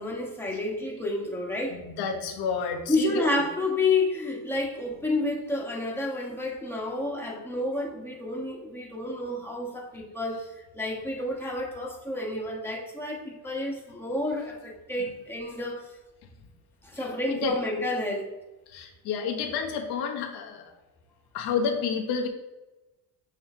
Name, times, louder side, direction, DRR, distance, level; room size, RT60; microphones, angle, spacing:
voice 1, 0.0-1.8 2.9-15.9 16.8-18.3, left 2 dB, 5° left, -2 dB, 1.5 m, -30 dB
voice 2, 1.7-3.3 17.3-17.6 18.7-20.7 21.3-22.3, left 6 dB, 85° left, 2 dB, 1.2 m, -30 dB
7.5 x 3.2 x 4.5 m, 1.1 s
cardioid pair, 105°, 38 cm